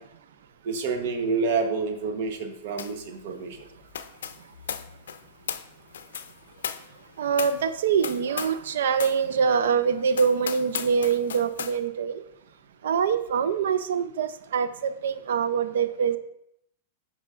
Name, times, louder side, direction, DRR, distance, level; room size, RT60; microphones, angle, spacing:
voice 1, 0.6-3.6, right 4 dB, 60° right, 6 dB, 1.0 m, -28 dB
sound 1, 2.8-3.1 3.3-8.7 9.0-9.2 9.7-9.8 10.1-11.8, left 8 dB, 85° left, 0.4 m, -36 dB
voice 2, 7.2-12.2 12.8-16.2, right 6 dB, 80° right, 11 dB, 0.5 m, -24 dB
9.8 x 4.9 x 2.5 m, 0.77 s
hypercardioid pair, 135°, 0 cm